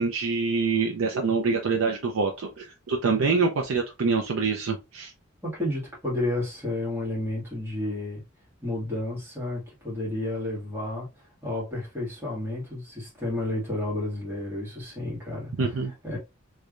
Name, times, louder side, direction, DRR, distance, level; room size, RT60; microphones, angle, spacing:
voice 1, 0.0-5.1 15.6-15.9, right 4 dB, 90° right, 0.5 m, -25 dB
voice 2, 5.4-8.2 8.6-11.1 11.4-16.2, left 1 dB, 10° right, 1.8 m, -31 dB
3.2 x 3.2 x 2.4 m
head